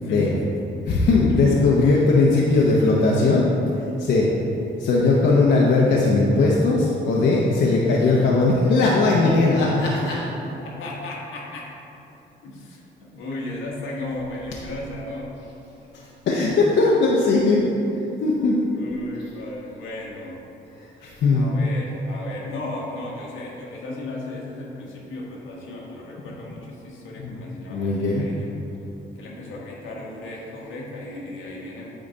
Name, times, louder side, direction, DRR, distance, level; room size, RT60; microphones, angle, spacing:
voice 1, 0.0-0.8 9.9-10.2 10.6-11.7 12.4-12.8 13.1-15.4 17.6-17.7 18.7-20.4 21.3-28.5 29.1-31.9, left 2 dB, 85° left, -3 dB, 1.4 m, -35 dB
voice 2, 0.9-3.5 4.0-4.3 4.8-10.2 16.3-17.6 18.2-18.6 21.0-21.5 27.2-27.4 27.7-28.2, left 3 dB, 65° left, -3 dB, 0.8 m, -19 dB
8.8 x 3.9 x 3.9 m, 2.9 s
cardioid pair, 90°, 20 cm